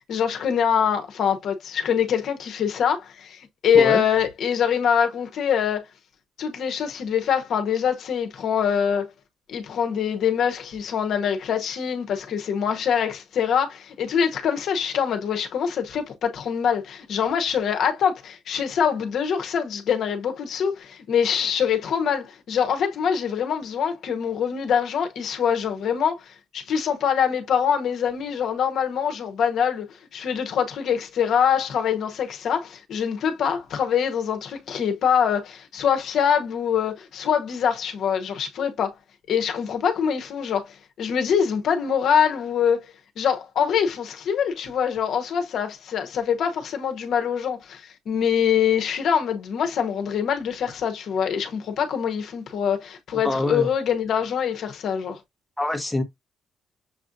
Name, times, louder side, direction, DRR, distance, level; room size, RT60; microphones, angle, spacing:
voice 1, 0.0-5.8 6.4-9.1 9.5-38.9 39.3-42.9 43.2-55.2, left 7 dB, 65° left, 0.9 m, -24 dB
voice 2, 53.2-53.7 55.6-56.0, left 2 dB, 5° left, 0.9 m, -24 dB
6.5 x 2.4 x 2.6 m
cardioid pair, 130°, 0 cm